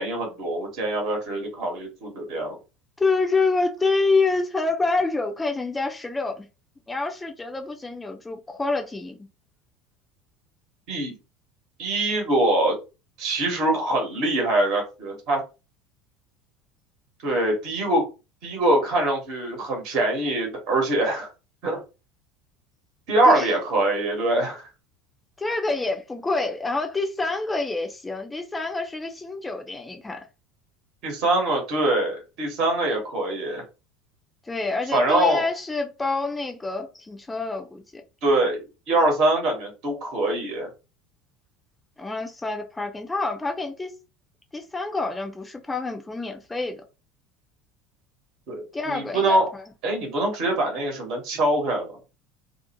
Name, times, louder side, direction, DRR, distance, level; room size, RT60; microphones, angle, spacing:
voice 1, 0.0-2.6 10.9-11.2 11.8-12.7 13.2-15.4 17.2-18.0 18.4-21.3 21.6-21.8 23.1-24.6 31.0-33.6 34.9-35.4 38.2-38.6 38.9-40.7 48.5-49.5 49.8-52.0, right 1 dB, 55° right, 1.0 m, -23 dB
voice 2, 3.0-6.5 6.9-9.2 23.3-23.6 25.4-30.3 34.4-38.0 42.0-43.9 44.5-46.8 48.7-49.6, left 3 dB, 15° left, 0.5 m, -27 dB
2.5 x 2.0 x 2.8 m
hypercardioid pair, 75°, 0 cm